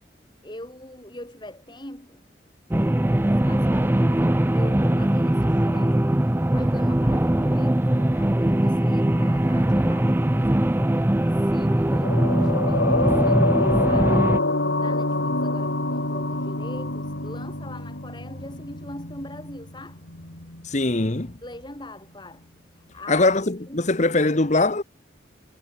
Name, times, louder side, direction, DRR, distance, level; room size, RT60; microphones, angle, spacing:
voice 1, 0.4-2.2 3.4-6.0 6.5-11.1 11.4-14.5 14.7-20.0 21.4-22.5 22.7-23.9 24.3-24.4, left 1 dB, 25° left, 7.6 m, -42 dB
sound 1, 2.7-14.4, right 1 dB, 10° right, 0.5 m, -21 dB
sound 2, 12.0-20.7 20.9-21.1, left 2 dB, 85° left, 4.5 m, -26 dB
voice 2, 20.6-21.4 23.1-24.8, left 2 dB, 40° left, 1.1 m, -21 dB
head